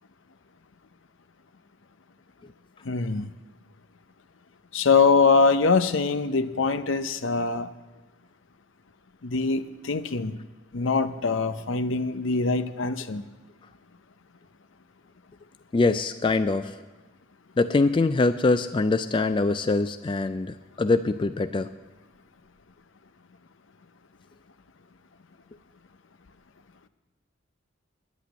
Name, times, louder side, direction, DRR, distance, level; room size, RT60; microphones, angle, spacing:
voice 1, 2.8-3.3 4.7-7.7 9.2-10.4 10.7-13.2, left 4 dB, 70° left, 11 dB, 0.7 m, -23 dB
voice 2, 15.7-16.7 17.6-21.7, left 3 dB, 25° left, 10 dB, 0.3 m, -23 dB
10.0 x 8.2 x 9.4 m, 1.2 s
head